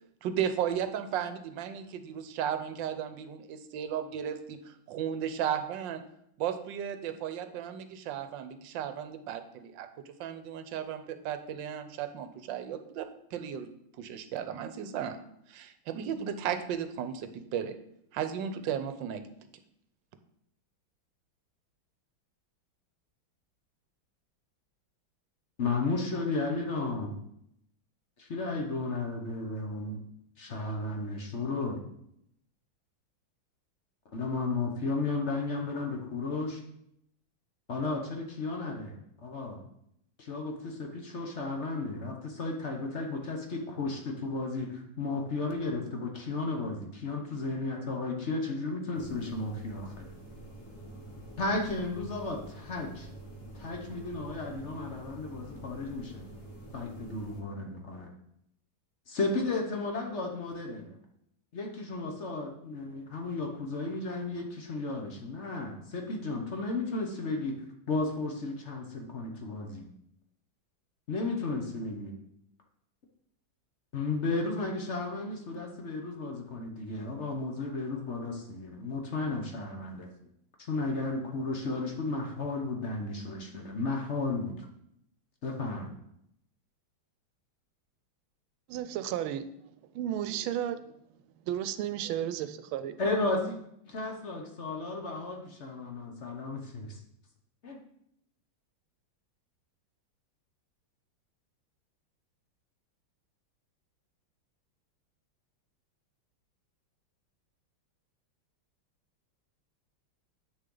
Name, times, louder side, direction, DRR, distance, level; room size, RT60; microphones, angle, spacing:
voice 1, 0.2-6.0 6.4-9.9 10.2-13.7 14.0-15.2 15.5-17.8 18.1-19.2, right 9 dB, 70° right, 10 dB, 1.3 m, -35 dB
voice 2, 25.6-27.2 28.2-30.0 30.4-31.8 34.1-36.6 37.7-39.6 40.2-50.1 51.4-53.1 53.5-56.2 56.7-58.1 59.1-61.0 61.5-67.5 67.9-69.9 71.1-72.1 73.9-80.1 80.6-84.7 85.4-85.9 93.0-93.6 93.8-97.0 97.6-97.8, left 3 dB, 45° left, 2 dB, 1.0 m, -34 dB
sound 1, 48.9-57.4, right 1 dB, 15° left, 1.3 m, -47 dB
voice 3, 88.7-89.5 89.9-90.8 91.5-93.0, right 11 dB, 85° right, 11 dB, 1.4 m, -33 dB
8.4 x 6.5 x 3.9 m, 0.75 s
omnidirectional pair, 2.2 m